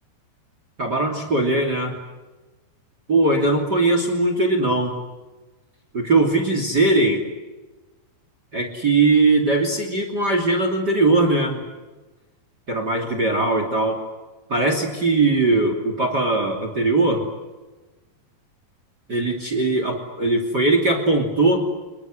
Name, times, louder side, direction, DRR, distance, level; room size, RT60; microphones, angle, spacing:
voice 1, 0.8-2.0 3.1-4.9 5.9-7.2 8.5-11.6 12.7-14.0 14.5-17.3 19.1-21.6, right 2 dB, 30° right, 6 dB, 2.9 m, -20 dB
28.0 x 22.0 x 8.0 m, 1.2 s
omnidirectional pair, 4.8 m